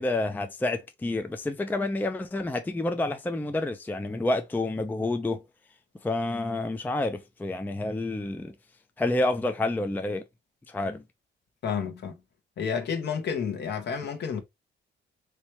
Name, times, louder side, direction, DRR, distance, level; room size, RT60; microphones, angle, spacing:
voice 1, 0.0-5.4 6.0-8.5 9.0-10.2 10.7-11.0, left 2 dB, 10° left, 0.4 m, -29 dB
voice 2, 11.6-12.2 12.6-14.4, left 6 dB, 60° left, 1.0 m, -30 dB
3.3 x 3.1 x 3.0 m
cardioid pair, 90°, 20 cm